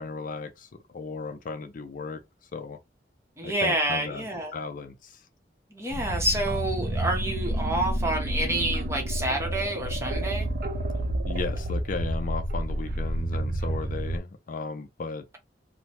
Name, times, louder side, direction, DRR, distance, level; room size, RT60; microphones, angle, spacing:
voice 1, 0.0-2.2 2.5-2.8 3.4-4.3 4.5-5.2 11.2-15.2, left 4 dB, 50° left, 0.4 m, -35 dB
voice 2, 3.4-4.5 5.7-10.5, right 1 dB, 15° right, 0.8 m, -28 dB
sound 1, 5.9-14.2, right 1 dB, 55° right, 0.5 m, -29 dB
3.0 x 2.1 x 2.8 m
head